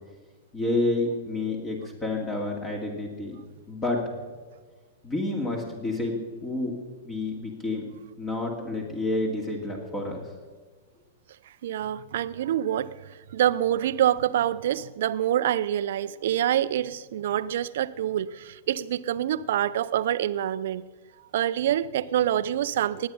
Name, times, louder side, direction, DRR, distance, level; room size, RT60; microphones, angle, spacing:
voice 1, 0.5-3.4 3.7-4.0 5.0-6.7 7.0-7.9 8.2-10.3, left 2 dB, 20° left, 1 dB, 2.5 m, -29 dB
voice 2, 11.6-13.0 13.3-20.9 21.3-23.1, right 11 dB, 60° right, 16 dB, 0.6 m, -26 dB
19.0 x 8.9 x 5.5 m, 1.4 s
figure-of-eight pair, 105°, 0 cm